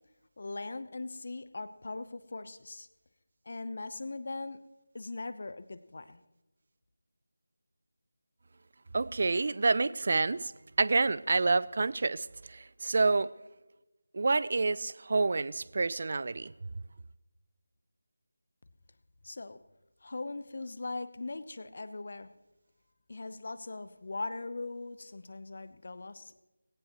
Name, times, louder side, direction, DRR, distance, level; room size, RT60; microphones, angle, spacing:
voice 1, 0.4-2.9 3.5-4.6 4.9-6.2 19.2-19.6 20.0-22.3 23.1-26.3, left 3 dB, 50° left, 0.9 m, -40 dB
voice 2, 8.9-10.5 10.8-13.3 14.1-16.5, right 3 dB, 45° right, 0.4 m, -28 dB
18.5 x 17.5 x 3.1 m
figure-of-eight pair, 165°, 0 cm